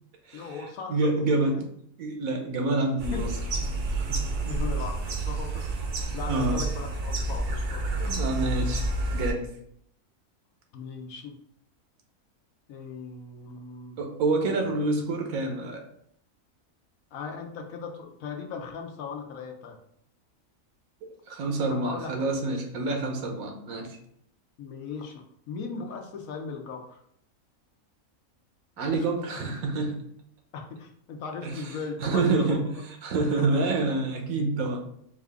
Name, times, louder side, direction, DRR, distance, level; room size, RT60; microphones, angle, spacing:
voice 1, 0.3-1.3 3.1-3.2 4.4-5.7 6.1-8.2 10.7-11.3 12.7-14.0 14.4-14.6 17.1-19.8 21.7-22.3 24.6-27.0 28.8-29.1 30.5-32.8 33.5-33.6, left 5 dB, 75° left, 2 dB, 1.1 m, -38 dB
voice 2, 0.9-1.6 2.0-3.3 4.0-4.3 6.3-6.6 8.0-8.8 9.1-9.5 14.0-15.8 21.0-24.0 28.8-30.0 31.4-31.5 32.0-32.7 33.0-34.8, right 3 dB, 80° right, 3 dB, 1.2 m, -27 dB
sound 1, 3.0-9.3, right 2 dB, 55° right, 0.7 m, -29 dB
4.7 x 2.4 x 3.4 m, 0.69 s
omnidirectional pair, 1.5 m